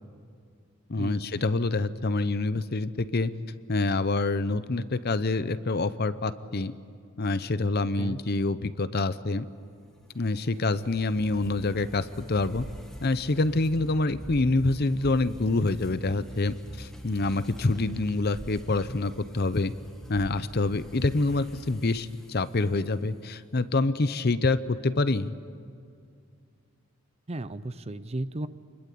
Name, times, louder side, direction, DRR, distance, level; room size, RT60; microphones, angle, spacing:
voice 1, 0.9-3.3 3.7-6.7 7.2-9.4 10.1-12.6 13.0-19.7 20.1-25.3, left 2 dB, 45° left, 14 dB, 0.7 m, -26 dB
sound 1, 9.8-23.2, equal, 5° left, 1.8 m, -45 dB
voice 2, 27.3-28.5, right 2 dB, 30° right, 14 dB, 0.6 m, -34 dB
27.5 x 21.5 x 8.4 m, 2.3 s
head